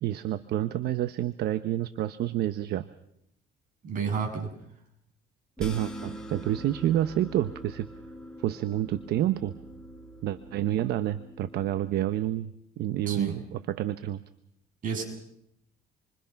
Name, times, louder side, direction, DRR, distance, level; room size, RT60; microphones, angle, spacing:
voice 1, 0.0-2.9 5.6-7.9 8.4-9.6 10.2-12.5 12.8-14.2, right 12 dB, 75° right, 12 dB, 1.0 m, -29 dB
voice 2, 3.8-4.5 13.1-13.3 14.8-15.0, right 6 dB, 50° right, 3 dB, 7.9 m, -30 dB
sound 1, 5.6-12.0, right 1 dB, 5° left, 4.4 m, -43 dB
28.0 x 24.5 x 5.9 m, 0.74 s
cardioid pair, 110°, 17 cm